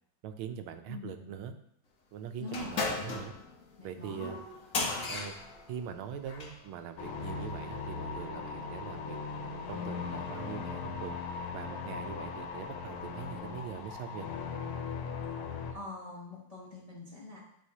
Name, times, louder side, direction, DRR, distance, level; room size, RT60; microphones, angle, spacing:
voice 1, 0.2-1.5 2.1-3.3 3.8-4.4 5.1-5.4 5.7-11.2 11.5-14.3, right 7 dB, 80° right, 8 dB, 1.4 m, -42 dB
voice 2, 0.9-1.3 2.4-2.9 3.8-4.3 15.7-17.4, left 2 dB, 30° left, -5 dB, 0.7 m, -44 dB
sound 1, 2.5-6.6, left 3 dB, 50° left, 1.1 m, -36 dB
sound 2, 7.0-15.7, left 5 dB, 85° left, 1.6 m, -39 dB
10.5 x 3.6 x 2.8 m, 0.72 s
omnidirectional pair, 2.3 m